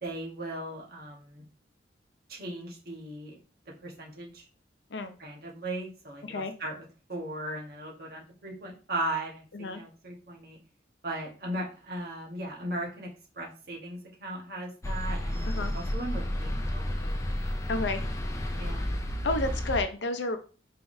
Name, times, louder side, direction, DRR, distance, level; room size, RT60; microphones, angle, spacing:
voice 1, 0.0-1.4 2.3-3.4 3.8-4.5 5.2-10.6 11.0-13.1 13.3-17.2 18.6-18.9, right 1 dB, 55° right, -1 dB, 1.2 m, -37 dB
voice 2, 6.2-6.5 9.5-9.8 15.5-15.7 17.7-18.0 19.2-20.4, left 2 dB, 75° left, 8 dB, 0.6 m, -30 dB
sound 1, 14.8-19.8, left 1 dB, 15° left, 0.4 m, -31 dB
4.5 x 3.5 x 2.7 m, 0.38 s
head